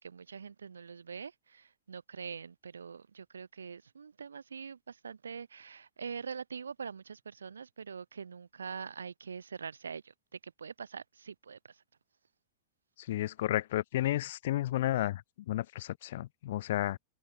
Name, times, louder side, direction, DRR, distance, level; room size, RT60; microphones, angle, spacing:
voice 1, 0.0-11.8, right 6 dB, 70° right, 2.7 m, -44 dB
voice 2, 13.1-17.0, left 14 dB, 55° left, 0.5 m, -32 dB
figure-of-eight pair, 90°, 0 cm